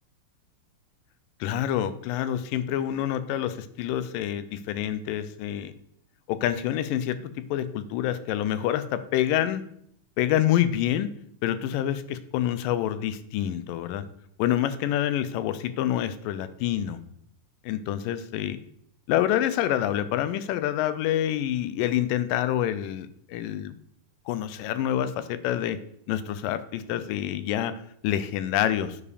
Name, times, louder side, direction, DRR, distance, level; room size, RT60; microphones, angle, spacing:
voice 1, 1.4-5.7 6.3-9.6 10.2-11.1 11.4-14.1 14.4-17.0 17.6-18.6 19.1-23.7 24.3-25.8 26.1-29.0, left 11 dB, 90° left, 13 dB, 2.3 m, -27 dB
9.8 x 4.9 x 5.0 m, 0.70 s
omnidirectional pair, 3.8 m